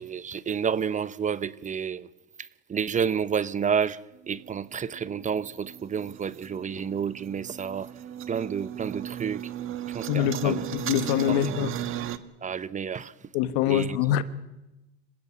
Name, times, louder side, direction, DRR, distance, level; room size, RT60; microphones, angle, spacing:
voice 1, 0.0-2.1 2.4-4.0 4.3-7.9 8.3-9.5 9.9-10.7 11.0-11.7 12.4-13.1 13.7-14.0, right 7 dB, 25° right, 0.9 m, -30 dB
sound 1, 4.2-12.2, right 11 dB, 45° right, 1.4 m, -36 dB
voice 2, 10.1-11.7 13.3-14.2, left 11 dB, 75° left, 1.4 m, -25 dB
26.5 x 15.5 x 8.6 m
supercardioid pair, 105°, 30 cm